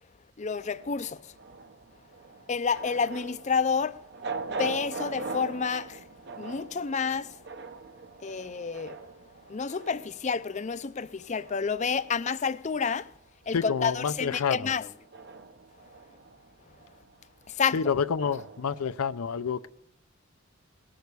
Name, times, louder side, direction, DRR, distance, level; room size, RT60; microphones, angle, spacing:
voice 1, 0.4-1.3 2.5-4.0 4.5-6.0 6.4-7.3 8.2-9.0 9.5-13.1 13.5-14.9 17.5-17.8, left 5 dB, 35° left, 0.4 m, -29 dB
sound 1, 0.6-13.2 13.5-18.8, right 4 dB, 50° right, 0.8 m, -42 dB
voice 2, 13.5-14.7 17.7-19.7, left 6 dB, 85° left, 0.5 m, -28 dB
19.0 x 6.5 x 8.2 m
head